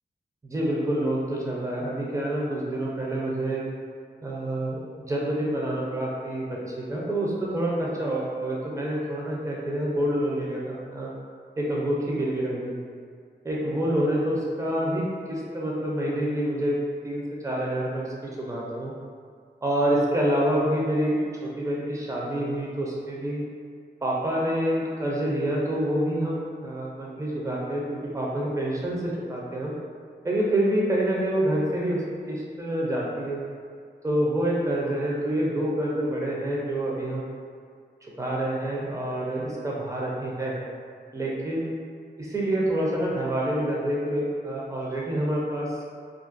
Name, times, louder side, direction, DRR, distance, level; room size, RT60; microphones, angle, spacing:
voice 1, 0.4-3.6 4.2-4.8 5.1-11.1 11.6-12.7 13.4-16.8 17.0-18.1 18.4-18.9 19.6-23.4 24.0-27.8 28.1-29.7 30.2-33.4 34.0-37.2 38.2-40.6 41.1-41.7 42.2-45.8, right 1 dB, 15° right, -4 dB, 0.4 m, -27 dB
2.3 x 2.1 x 2.5 m, 2.1 s
wide cardioid pair, 100°, 18 cm